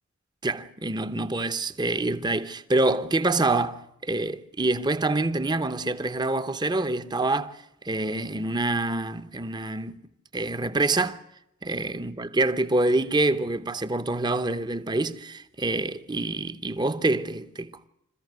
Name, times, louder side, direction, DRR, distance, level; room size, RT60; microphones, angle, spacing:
voice 1, 0.4-10.0 10.3-11.2 11.6-17.7, right 2 dB, 20° right, 0.9 m, -26 dB
27.0 x 14.5 x 8.1 m
head